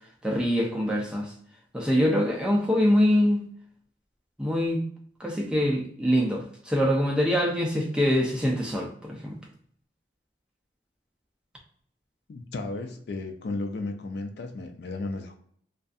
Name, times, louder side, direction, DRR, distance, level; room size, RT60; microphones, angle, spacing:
voice 1, 0.2-1.3 1.7-3.5 4.4-4.8 5.2-9.4, equal, 5° right, -1 dB, 0.4 m, -24 dB
voice 2, 12.3-15.4, left 2 dB, 60° left, 5 dB, 0.4 m, -34 dB
2.5 x 2.3 x 2.3 m, 0.62 s
head